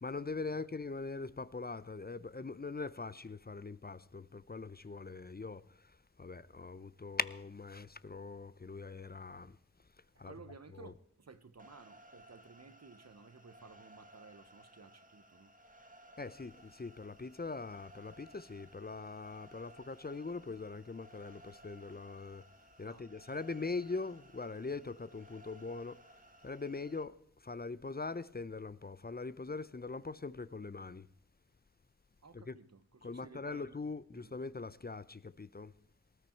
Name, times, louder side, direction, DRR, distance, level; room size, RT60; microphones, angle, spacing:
voice 1, 0.0-5.6 6.2-9.6 10.2-10.3 10.7-10.9 16.2-22.4 22.8-26.0 26.4-27.1 27.4-31.1 32.3-32.5 33.0-35.7, left 3 dB, 30° left, 0.6 m, -42 dB
voice 2, 10.1-15.5 22.9-23.1 32.2-33.7 34.1-34.3, right 4 dB, 60° right, 1.2 m, -56 dB
sound 1, 11.6-27.0, right 1 dB, 25° right, 1.7 m, -60 dB
19.0 x 13.5 x 4.5 m
wide cardioid pair, 45°, 30 cm